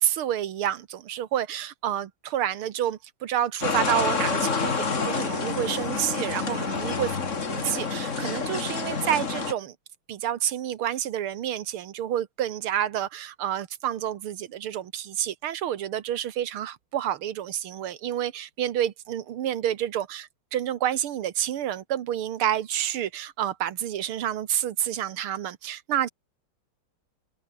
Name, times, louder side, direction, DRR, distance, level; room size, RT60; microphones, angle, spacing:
voice 1, 0.0-7.2 7.5-9.8 10.1-26.1, right 11 dB, 75° right, 2.1 m, -29 dB
sound 1, 3.6-9.5, left 5 dB, 35° left, 2.2 m, -28 dB
open air
omnidirectional pair, 2.4 m